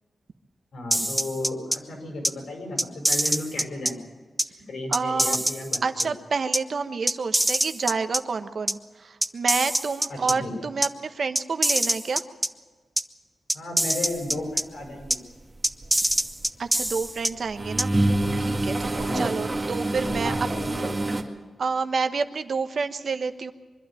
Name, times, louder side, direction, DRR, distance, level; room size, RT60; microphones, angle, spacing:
voice 1, 0.7-4.0 4.7-5.8 10.1-10.5 13.5-15.2 18.7-19.3 20.0-20.9, left 2 dB, 85° left, 2 dB, 7.0 m, -34 dB
sound 1, 0.9-1.8 2.2-2.3 2.8-3.9 4.4-4.5 4.9-6.1 6.5-6.6 7.1-8.2 8.7-8.8 9.2-10.3 10.8-10.9 11.4-12.5 13.0-13.1 13.5-14.6 15.1-15.2 15.6-17.3 17.8-17.9, right 1 dB, 5° right, 0.6 m, -24 dB
voice 2, 4.9-5.4 5.8-12.2 16.6-17.9 18.5-20.3 20.7-20.8 21.6-23.5, right 5 dB, 55° right, 9 dB, 1.1 m, -29 dB
sound 2, 14.8-15.1 15.6-16.9 17.3-21.2, right 2 dB, 25° right, 2.0 m, -26 dB
24.0 x 12.0 x 9.0 m, 1.4 s
wide cardioid pair, 140°, 0 cm